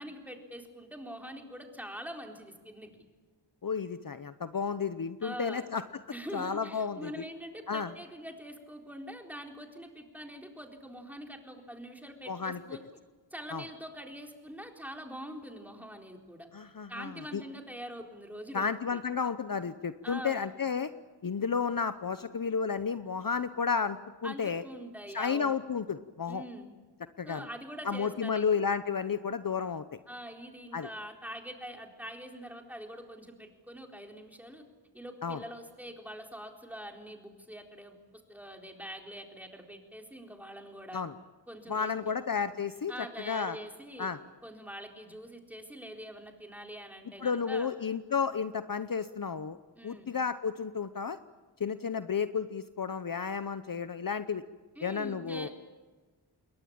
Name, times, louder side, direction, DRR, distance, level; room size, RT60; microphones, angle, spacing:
voice 1, 0.0-2.9 5.2-5.7 6.1-12.8 13.3-16.5 16.9-19.0 20.0-20.5 24.2-25.6 26.3-26.7 27.3-28.5 30.1-34.6 34.9-38.0 38.3-41.0 41.5-41.9 42.9-44.1 44.4-47.7 49.7-50.1 54.8-55.5, equal, 5° right, 3 dB, 4.0 m, -44 dB
voice 2, 3.6-5.8 6.3-7.2 7.7-7.9 12.3-12.6 13.5-13.6 16.5-17.4 18.5-20.9 21.2-24.6 25.1-26.4 27.2-27.5 27.8-30.0 30.7-30.9 35.2-35.4 40.9-41.1 41.7-42.9 43.2-43.6 44.0-44.2 47.2-49.6 49.8-51.2 51.6-54.4 54.8-55.5, left 6 dB, 50° left, 12 dB, 0.9 m, -32 dB
28.0 x 21.5 x 8.9 m, 1.3 s
wide cardioid pair, 95°, 44 cm